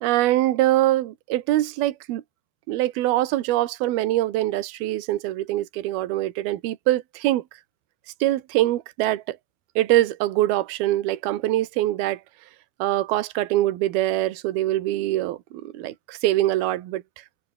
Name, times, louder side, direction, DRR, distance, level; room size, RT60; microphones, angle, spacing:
voice 1, 0.0-2.2 2.7-7.4 8.2-9.4 9.8-12.2 12.8-17.0, right 15 dB, 65° right, 2.9 m, -23 dB
open air
omnidirectional pair, 5.4 m